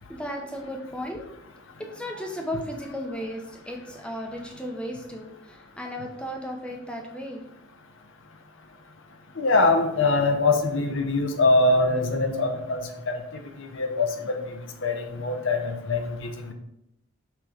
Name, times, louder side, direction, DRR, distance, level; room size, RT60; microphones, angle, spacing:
voice 1, 0.1-1.2 1.8-7.4, equal, 5° left, 1 dB, 0.8 m, -35 dB
voice 2, 9.4-16.5, left 2 dB, 60° left, 4 dB, 0.8 m, -24 dB
6.1 x 3.2 x 5.0 m, 0.81 s
head